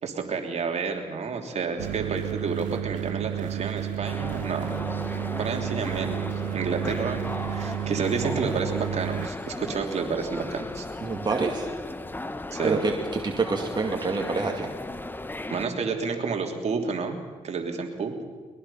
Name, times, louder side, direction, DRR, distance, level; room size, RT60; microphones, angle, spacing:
voice 1, 0.0-4.7 5.4-6.2 6.5-10.9 12.5-12.8 15.5-17.2 17.4-18.2, right 5 dB, 55° right, 3 dB, 3.1 m, -30 dB
sound 1, 1.8-9.3, right 12 dB, 85° right, 0.5 m, -32 dB
sound 2, 4.0-15.7, left 2 dB, 15° left, 1.3 m, -36 dB
voice 2, 11.0-11.7 12.6-12.9 13.2-14.7, right 4 dB, 35° right, 1 dB, 2.4 m, -27 dB
21.5 x 21.5 x 5.7 m, 1.4 s
cardioid pair, 70°, 13 cm